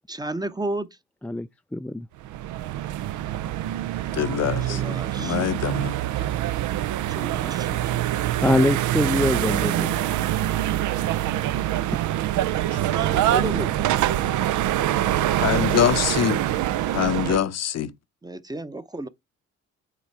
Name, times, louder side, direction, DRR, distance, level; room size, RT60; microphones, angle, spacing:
voice 1, 0.1-0.9 4.7-5.4 7.1-8.0 12.9-13.9 18.2-19.1, right 1 dB, 15° right, 0.8 m, -33 dB
voice 2, 1.7-2.1 8.4-10.0, left 1 dB, 5° left, 0.3 m, -23 dB
sound 1, 2.2-17.4, right 13 dB, 75° right, 0.5 m, -25 dB
voice 3, 4.1-6.0 12.7-12.8 15.4-16.4 16.9-17.9, left 10 dB, 60° left, 0.8 m, -24 dB
8.1 x 3.8 x 4.6 m
cardioid pair, 90°, 30 cm